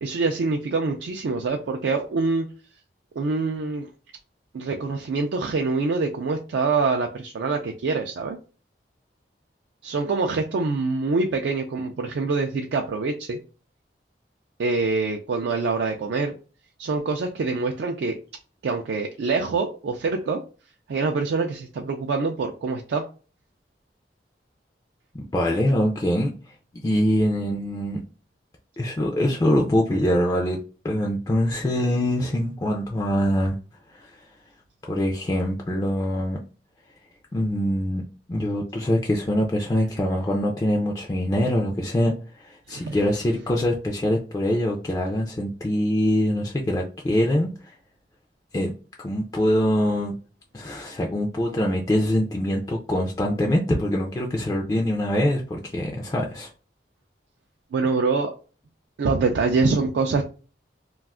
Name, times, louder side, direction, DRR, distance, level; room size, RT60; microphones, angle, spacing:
voice 1, 0.0-2.5 3.2-3.8 4.5-8.4 9.8-13.4 14.6-16.3 16.8-18.2 18.6-20.4 20.9-23.0 42.7-43.0 57.7-58.3 59.0-60.3, right 4 dB, 75° right, 0.4 m, -25 dB
voice 2, 25.3-26.3 26.8-28.0 28.8-30.6 30.8-33.6 33.9-34.3 34.9-36.4 37.3-38.0 38.3-42.1 42.4-47.7 48.5-48.7 49.0-50.2 50.5-56.5, left 1 dB, 20° left, 0.3 m, -24 dB
2.4 x 2.3 x 3.5 m
head